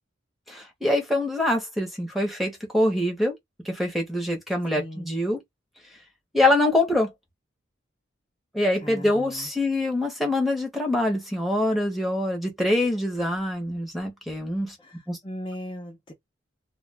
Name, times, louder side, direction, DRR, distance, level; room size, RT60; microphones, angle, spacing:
voice 1, 0.5-3.4 3.6-5.4 6.3-7.1 8.5-14.8 15.1-15.2, left 1 dB, ahead, 0.8 m, -24 dB
voice 2, 4.7-5.1 8.8-9.5 14.8-16.1, equal, 25° left, 0.5 m, -38 dB
2.3 x 2.1 x 3.3 m
head